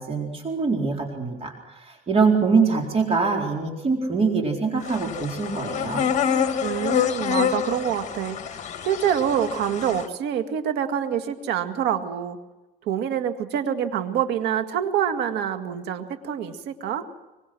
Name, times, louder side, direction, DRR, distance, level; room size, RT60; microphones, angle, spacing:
voice 1, 0.0-6.1, right 4 dB, 35° right, 1 dB, 4.2 m, -24 dB
sound 1, 4.8-10.1, left 8 dB, 45° left, 2.0 m, -27 dB
voice 2, 6.6-12.4 12.8-17.1, right 9 dB, 85° right, 7 dB, 2.0 m, -26 dB
24.0 x 24.0 x 6.2 m, 1.1 s
cardioid pair, 110°, 17 cm